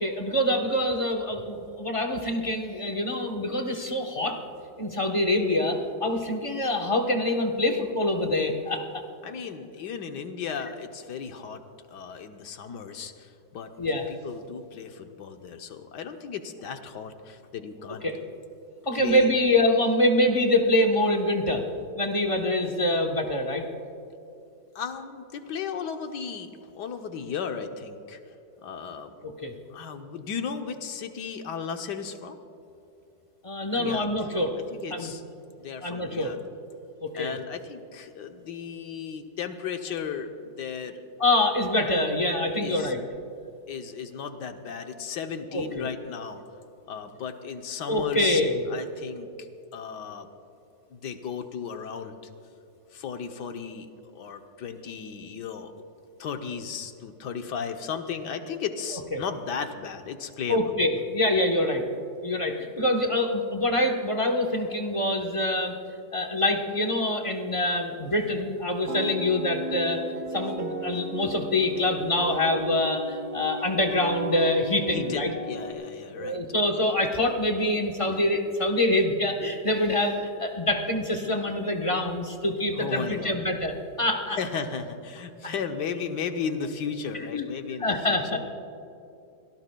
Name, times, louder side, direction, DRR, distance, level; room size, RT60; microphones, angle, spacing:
voice 1, 0.0-4.4 4.8-9.0 13.8-14.1 18.0-18.2 18.9-21.6 22.0-23.6 29.4-29.5 33.4-34.5 34.9-35.1 35.8-36.3 37.0-37.3 41.2-43.0 45.5-45.9 47.9-48.6 59.1-59.2 60.5-61.8 62.2-65.7 66.1-70.0 70.3-75.3 76.1-84.4 87.1-87.5 87.8-88.4, left 1 dB, 25° left, 2 dB, 0.8 m, -25 dB
voice 2, 9.2-11.6 11.9-13.7 14.1-18.0 18.9-19.4 24.7-28.2 28.6-29.2 29.7-32.4 33.7-34.1 34.7-35.2 35.6-36.4 37.1-40.3 40.6-41.0 42.6-42.9 43.7-46.4 46.9-48.4 48.7-49.3 49.7-50.3 50.9-52.2 52.9-55.7 56.2-60.7 74.9-76.4 82.7-83.4 84.4-88.4, left 6 dB, 70° left, 6 dB, 1.4 m, -35 dB
sound 1, 68.9-75.7, right 1 dB, 40° right, 1.4 m, -34 dB
26.0 x 17.5 x 2.3 m, 2.8 s
omnidirectional pair, 2.0 m